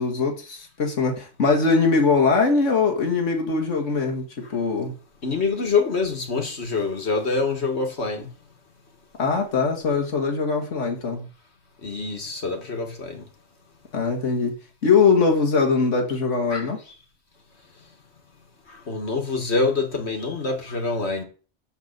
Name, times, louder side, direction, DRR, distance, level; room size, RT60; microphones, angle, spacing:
voice 1, 0.0-4.2 4.5-4.9 9.2-11.3 13.9-14.6 14.8-16.8, left 4 dB, 85° left, 2.2 m, -21 dB
voice 2, 5.2-8.3 11.8-13.2 16.5-16.7 18.9-21.2, left 4 dB, 65° left, 2.2 m, -25 dB
7.3 x 6.8 x 6.7 m
omnidirectional pair, 1.2 m